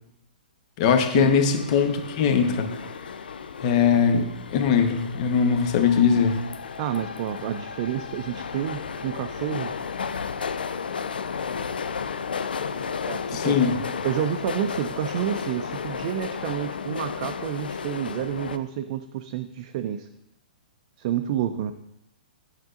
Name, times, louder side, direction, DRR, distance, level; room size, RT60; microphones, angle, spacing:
voice 1, 0.8-2.7 3.6-6.4 13.3-13.7, left 6 dB, 45° left, 7 dB, 1.0 m, -21 dB
sound 1, 1.1-18.6, left 6 dB, 75° left, 0.5 m, -33 dB
voice 2, 6.8-9.7 13.1-13.6 14.0-20.1 21.0-21.7, right 10 dB, 45° right, 7 dB, 0.5 m, -29 dB
9.3 x 6.6 x 2.5 m, 0.84 s
hypercardioid pair, 115°, 5 cm